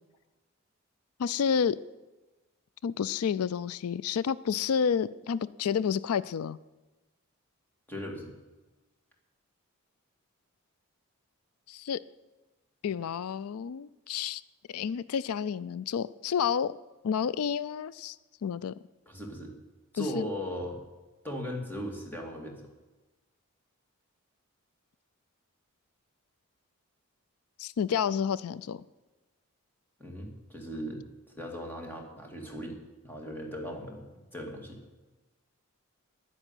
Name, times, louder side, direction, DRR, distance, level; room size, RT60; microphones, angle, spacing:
voice 1, 1.2-1.8 2.8-6.6 11.7-12.0 12.8-14.4 14.7-16.8 17.0-18.2 18.4-18.7 20.0-20.3 27.6-28.8, left 7 dB, 85° left, 19 dB, 0.4 m, -30 dB
voice 2, 7.9-8.3 19.1-19.5 19.9-20.8 21.2-22.7 30.0-32.8 33.0-34.1 34.3-34.8, equal, 10° left, 1 dB, 2.4 m, -38 dB
11.0 x 9.9 x 9.1 m, 1.1 s
head